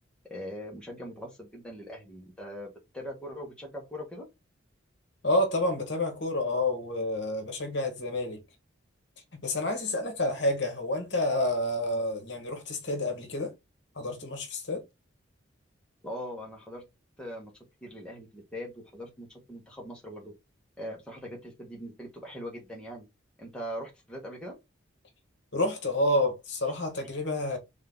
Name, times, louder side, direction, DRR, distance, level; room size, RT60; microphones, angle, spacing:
voice 1, 0.3-4.2 16.0-16.8 17.2-17.5 17.8-20.3 20.8-23.1 23.4-24.5, equal, 5° left, 0.9 m, -41 dB
voice 2, 5.2-8.4 9.3-13.5 14.0-14.8 25.5-27.6, left 1 dB, 60° left, 1.0 m, -29 dB
3.3 x 2.7 x 3.5 m
head